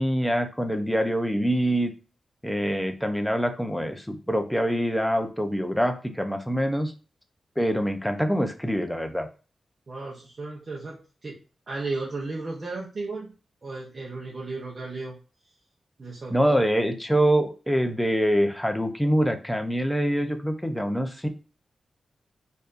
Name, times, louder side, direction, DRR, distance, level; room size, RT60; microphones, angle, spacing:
voice 1, 0.0-1.9 2.4-6.9 7.6-9.3 16.3-21.3, equal, ahead, 5 dB, 0.5 m, -25 dB
voice 2, 9.9-11.4 11.7-13.3 13.6-15.2 16.0-16.6, right 3 dB, 35° right, -4 dB, 0.7 m, -34 dB
4.5 x 2.6 x 2.5 m, 0.34 s
wide cardioid pair, 160°, 0 cm